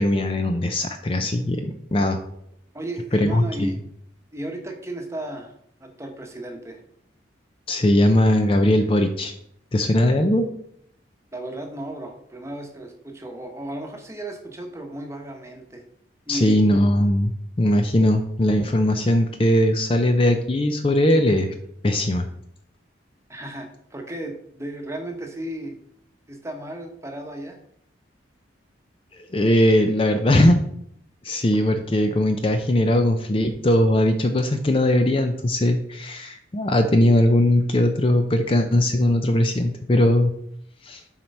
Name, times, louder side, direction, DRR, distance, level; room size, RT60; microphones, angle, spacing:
voice 1, 0.0-2.2 3.1-3.8 7.7-9.3 9.7-10.5 16.3-21.5 21.8-22.3 29.3-30.6 31.2-40.3 40.8-41.0, left 1 dB, 30° left, 6 dB, 0.5 m, -20 dB
voice 2, 2.7-3.8 4.3-5.5 5.8-6.8 11.3-15.9 16.3-16.6 23.3-25.8 26.3-27.6, right 1 dB, 15° right, 3 dB, 1.0 m, -34 dB
7.4 x 4.5 x 5.4 m, 0.71 s
head